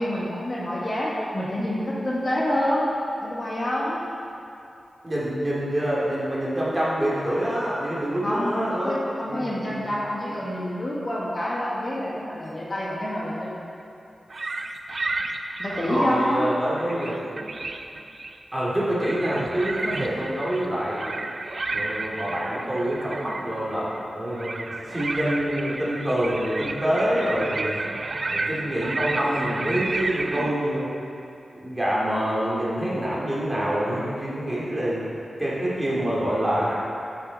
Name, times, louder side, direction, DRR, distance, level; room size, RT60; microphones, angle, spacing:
voice 1, 0.0-2.9 3.2-4.0 8.2-13.5 15.6-16.5 20.1-20.2, left 1 dB, 35° left, -6 dB, 1.7 m, -27 dB
voice 2, 5.0-9.0 9.3-9.4 9.7-9.9 10.2-10.3 15.7-17.2 18.5-21.2 21.7-27.8 28.3-31.0 31.5-35.1 35.4-36.8, equal, 15° right, -7 dB, 2.6 m, -26 dB
sound 1, 14.3-16.4 16.8-18.4 18.8-30.5, right 2 dB, 40° right, 0.5 m, -32 dB
11.5 x 7.5 x 4.1 m, 2.7 s
wide cardioid pair, 120°, 0 cm